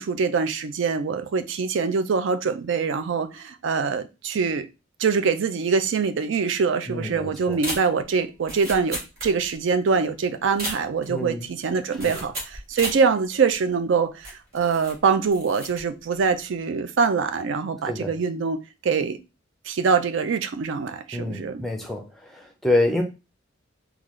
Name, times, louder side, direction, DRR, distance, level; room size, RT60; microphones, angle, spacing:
voice 1, 0.0-4.7 5.0-19.2 19.7-21.6, right 5 dB, 65° right, 0.4 m, -24 dB
voice 2, 6.9-7.6 11.1-11.5 12.0-12.1 17.9-18.1 21.1-23.0, left 1 dB, ahead, 0.5 m, -27 dB
sound 1, 7.5-9.7 9.9-10.0 10.4-11.2 12.0-13.1 13.5-13.6 14.2-15.0 15.2-15.8 16.1-16.4, right 1 dB, 50° right, 1.7 m, -34 dB
3.7 x 2.3 x 3.0 m
head